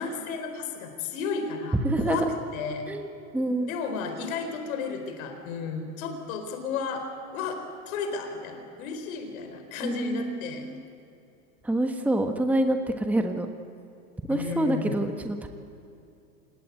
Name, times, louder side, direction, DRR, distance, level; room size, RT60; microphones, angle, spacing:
voice 1, 0.0-2.9 3.7-7.0 7.3-7.6 7.9-10.6 14.3-15.0, left 5 dB, 70° left, 6 dB, 4.5 m, -33 dB
voice 2, 1.8-2.3 2.9-3.7 9.8-10.8 11.6-13.5 14.3-15.5, right 1 dB, 5° right, 5 dB, 1.3 m, -27 dB
26.5 x 20.5 x 8.3 m, 2.6 s
supercardioid pair, 135°, 43 cm